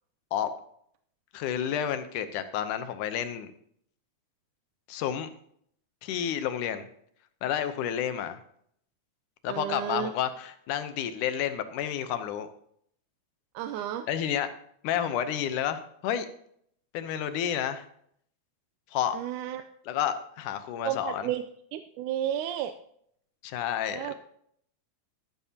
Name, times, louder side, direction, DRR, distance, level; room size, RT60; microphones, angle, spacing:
voice 1, 1.3-3.5 4.9-5.3 6.0-6.8 7.4-8.4 9.4-12.5 14.1-14.5 14.8-16.3 16.9-17.9 18.9-19.2 19.9-21.3 23.4-24.1, left 9 dB, 85° left, 10 dB, 2.4 m, -30 dB
voice 2, 9.5-10.1 13.6-14.1 19.1-19.6 20.8-21.4 21.7-22.7 23.9-24.1, right 11 dB, 90° right, 9 dB, 2.1 m, -32 dB
14.0 x 12.0 x 2.9 m, 0.66 s
omnidirectional pair, 3.5 m